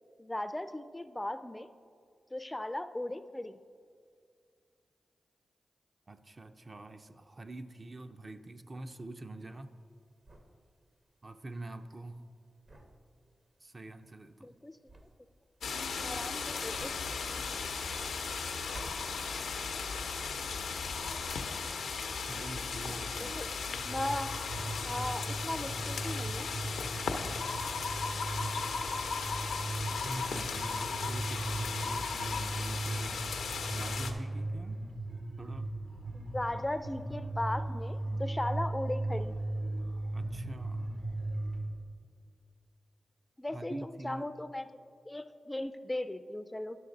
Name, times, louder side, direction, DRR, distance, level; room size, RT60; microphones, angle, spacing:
voice 1, 0.2-1.7 2.3-3.6 14.4-14.8 16.0-16.9 23.2-24.4 24.8-26.5 36.1-39.4 43.4-46.8, left 1 dB, 20° left, 12 dB, 0.4 m, -37 dB
voice 2, 6.1-9.8 11.2-12.3 13.6-14.6 22.3-23.5 30.0-33.4 33.7-34.8 35.4-35.7 40.1-41.0 43.5-44.2, right 2 dB, 40° right, 7 dB, 0.5 m, -45 dB
sound 1, 9.5-20.7 21.0-21.8, right 1 dB, 60° right, 1.1 m, -54 dB
sound 2, 15.6-34.1, left 5 dB, 85° left, 0.6 m, -36 dB
sound 3, 23.7-41.6, right 2 dB, 80° right, 2.0 m, -38 dB
11.0 x 6.3 x 3.9 m, 2.2 s
supercardioid pair, 40°, 0 cm